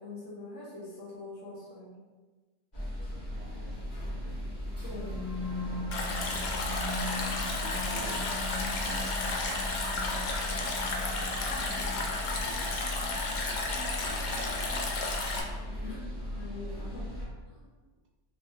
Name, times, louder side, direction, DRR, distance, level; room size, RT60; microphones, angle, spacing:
voice 1, 0.0-2.0 3.7-3.8 4.8-5.3 11.6-11.7 15.7-17.0 17.5-17.7, left 3 dB, 75° left, -6 dB, 1.3 m, -44 dB
sound 1, 2.7-17.3, equal, 40° left, 1.3 m, -38 dB
voice 2, 3.3-4.5 5.3-6.6 7.6-8.3 8.7-9.3 9.9-10.3 11.5-12.6 13.1-13.6 14.0-15.5 16.7-17.0, right 2 dB, 85° right, 0 dB, 1.0 m, -51 dB
sound 2, 4.7-15.6, left 1 dB, 60° right, 0.8 m, -41 dB
Stream, 5.9-15.4, left 3 dB, 60° left, 0.5 m, -33 dB
3.3 x 3.3 x 2.6 m, 1.3 s
omnidirectional pair, 1.2 m